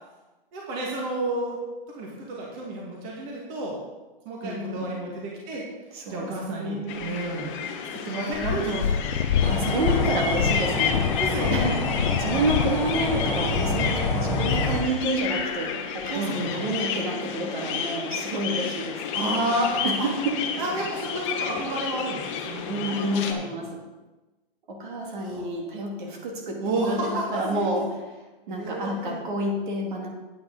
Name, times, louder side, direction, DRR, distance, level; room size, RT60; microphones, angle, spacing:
voice 1, 0.5-1.6 1.9-3.8 4.3-5.6 6.1-7.5 8.1-9.3 11.2-11.9 16.1-16.7 19.1-20.1 20.6-23.4 25.2-25.4 26.6-27.8 28.5-29.2, right 1 dB, 30° right, -2 dB, 1.8 m, -31 dB
voice 2, 4.4-5.0 5.9-7.1 9.4-11.0 11.5-19.0 19.8-20.6 22.7-23.8 24.7-27.9 28.5-30.1, right 1 dB, 55° right, 1 dB, 2.4 m, -29 dB
sound 1, 6.9-23.3, left 6 dB, 30° left, 1.1 m, -31 dB
Purr, 8.3-14.7 15.4-15.5, left 8 dB, 75° left, 0.6 m, -27 dB
sound 2, 9.4-14.8, left 2 dB, 5° left, 1.1 m, -28 dB
9.1 x 8.9 x 3.9 m, 1.1 s
hypercardioid pair, 150°, 29 cm